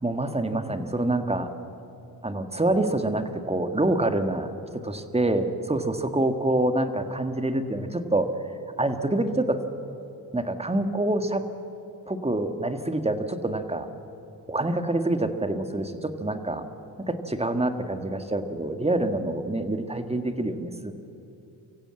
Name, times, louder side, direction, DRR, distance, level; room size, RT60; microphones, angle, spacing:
voice 1, 0.0-1.5 2.2-4.5 4.8-8.3 8.8-9.6 10.3-11.5 12.1-13.9 14.5-16.7 17.0-21.0, right 2 dB, 15° right, 8 dB, 1.7 m, -26 dB
24.0 x 15.5 x 7.7 m, 2.9 s
cardioid pair, 60°, 39 cm